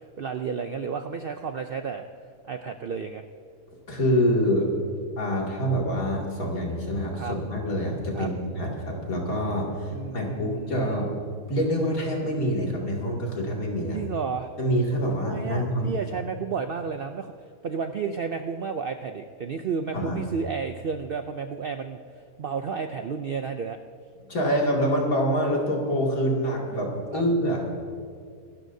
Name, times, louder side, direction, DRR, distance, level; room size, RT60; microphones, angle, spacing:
voice 1, 0.2-2.1 2.5-3.2 7.1-7.3 8.1-8.3 9.9-11.0 13.9-14.5 15.2-17.3 17.6-23.8 27.1-27.2, right 6 dB, 65° right, 7 dB, 0.5 m, -32 dB
voice 2, 3.9-4.7 5.2-11.1 11.5-14.0 14.6-15.9 19.9-20.2 24.2-27.6, equal, 70° left, -2 dB, 2.9 m, -26 dB
25.5 x 12.5 x 2.7 m, 2.2 s
omnidirectional pair, 1.5 m